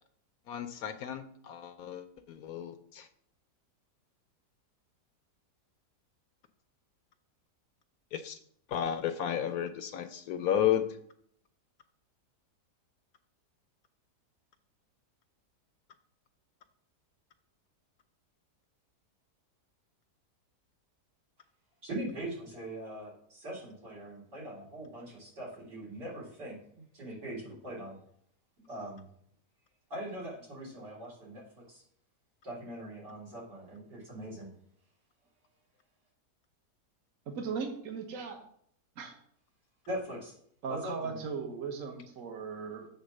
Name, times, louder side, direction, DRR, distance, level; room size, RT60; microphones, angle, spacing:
voice 1, 0.5-3.1 8.1-8.4 8.7-10.8, left 10 dB, 70° left, 9 dB, 1.0 m, -32 dB
voice 2, 21.8-28.0 28.7-29.1 29.9-31.8 32.4-34.5 39.9-40.3 40.7-41.2, right 1 dB, 85° right, -6 dB, 4.3 m, -41 dB
voice 3, 37.3-38.4 39.0-39.2 40.6-42.9, right 5 dB, 55° right, 3 dB, 1.4 m, -38 dB
8.0 x 3.7 x 6.3 m, 0.65 s
omnidirectional pair, 1.8 m